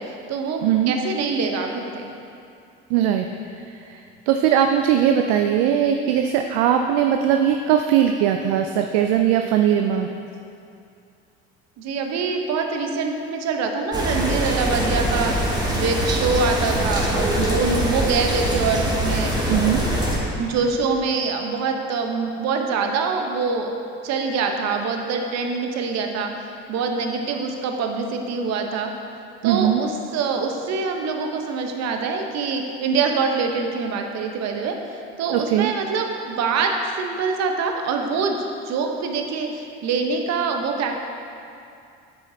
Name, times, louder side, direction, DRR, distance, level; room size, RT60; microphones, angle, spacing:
voice 1, 0.0-2.1 11.8-15.4 15.7-19.3 20.4-23.7 24.0-28.9 29.4-34.8 35.2-41.0, right 4 dB, 55° right, 4 dB, 0.9 m, -24 dB
voice 2, 0.6-0.9 2.9-3.3 3.6-10.1 19.5-19.8 29.4-29.8 35.3-35.7, right 9 dB, 70° right, 5 dB, 0.5 m, -20 dB
sound 1, 13.9-20.2, right 1 dB, 15° right, 1.6 m, -23 dB
9.1 x 6.7 x 2.8 m, 2.5 s
hypercardioid pair, 75°, 32 cm